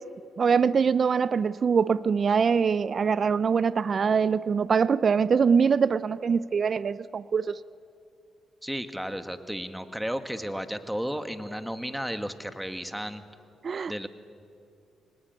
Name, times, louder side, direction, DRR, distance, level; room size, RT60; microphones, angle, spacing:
voice 1, 0.4-7.6 13.6-14.1, right 6 dB, 50° right, 18 dB, 0.5 m, -23 dB
voice 2, 8.6-13.2 13.9-14.1, equal, 5° right, 8 dB, 2.0 m, -33 dB
24.5 x 19.5 x 9.5 m, 2.5 s
supercardioid pair, 60°, 0 cm